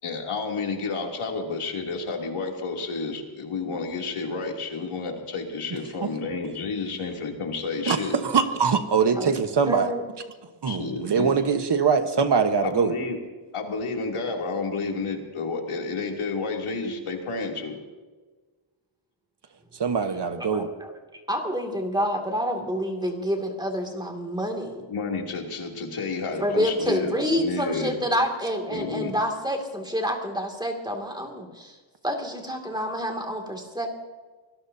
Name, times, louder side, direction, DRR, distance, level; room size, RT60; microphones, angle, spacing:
voice 1, 0.0-8.1 10.7-11.3 12.6-13.2 13.5-17.8 24.9-28.0 28.7-29.1, left 4 dB, 90° left, 1 dB, 3.1 m, -30 dB
voice 2, 7.9-9.9 10.6-12.9 19.8-20.7, right 6 dB, 55° right, 8 dB, 1.3 m, -23 dB
voice 3, 9.7-10.0 20.4-20.7 21.3-24.9 26.4-31.8 32.0-33.9, equal, 10° right, 3 dB, 2.5 m, -28 dB
26.0 x 19.0 x 2.8 m, 1.3 s
wide cardioid pair, 155°, 49 cm